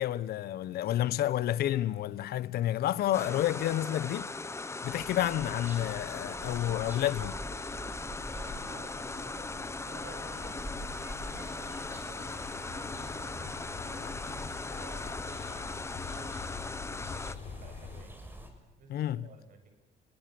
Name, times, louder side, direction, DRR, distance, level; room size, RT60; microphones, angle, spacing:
voice 1, 0.0-4.3 4.8-7.4 18.9-19.3, left 12 dB, 65° left, 1.3 m, -30 dB
sound 1, 3.1-17.4, left 3 dB, 15° left, 1.3 m, -39 dB
sound 2, 4.9-18.5, equal, 10° right, 6.6 m, -47 dB
sound 3, 6.3-18.0, left 5 dB, 40° left, 4.4 m, -46 dB
voice 2, 8.3-10.6 11.2-18.2 18.8-19.7, right 4 dB, 55° right, 7.7 m, -53 dB
29.5 x 22.0 x 8.0 m
cardioid pair, 110°, 17 cm